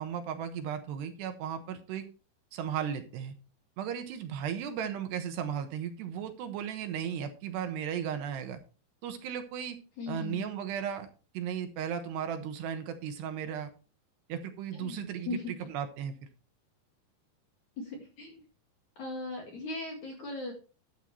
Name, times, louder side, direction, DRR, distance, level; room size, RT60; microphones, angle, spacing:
voice 1, 0.0-2.0 2.5-3.3 3.8-8.6 9.0-9.8 10.1-11.1 11.3-13.7 14.3-16.1, right 8 dB, 70° right, 7 dB, 3.1 m, -35 dB
voice 2, 10.0-10.5 14.7-15.5 17.8-18.4 19.0-20.5, left 2 dB, 50° left, 1 dB, 2.9 m, -38 dB
12.5 x 10.0 x 3.2 m, 0.34 s
omnidirectional pair, 5.3 m